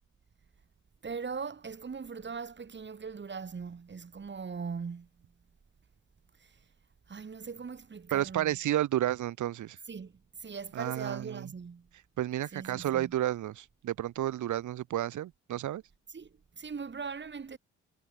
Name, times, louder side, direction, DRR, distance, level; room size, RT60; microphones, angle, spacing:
voice 1, 1.0-5.1 6.4-6.5 7.1-8.6 9.9-11.9 12.5-13.1 16.1-17.6, right 5 dB, 35° right, 6.9 m, -40 dB
voice 2, 8.1-9.8 10.7-11.5 12.2-15.8, right 13 dB, 75° right, 2.9 m, -31 dB
cardioid pair, 90°, 30 cm